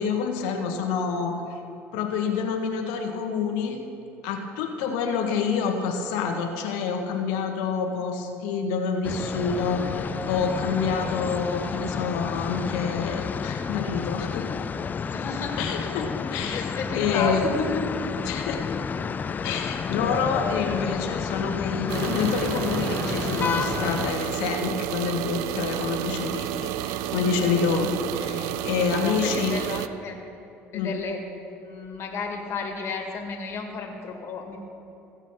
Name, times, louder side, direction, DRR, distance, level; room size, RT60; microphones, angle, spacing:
voice 1, 0.0-1.6 1.9-3.8 4.2-14.5 15.6-16.6 16.9-17.4 18.3-18.8 19.4-27.9 28.1-29.5 30.7-30.9, left 6 dB, 80° left, 4 dB, 1.5 m, -27 dB
sound 1, 9.0-24.1, left 6 dB, 30° left, 0.4 m, -30 dB
voice 2, 15.0-15.6 16.3-17.9 28.9-30.2 30.7-31.2 31.6-34.6, left 4 dB, 50° left, 2 dB, 1.9 m, -33 dB
sound 2, 21.9-29.9, right 12 dB, 80° right, 0.4 m, -31 dB
16.0 x 7.3 x 5.6 m, 2.9 s
supercardioid pair, 85°, 6 cm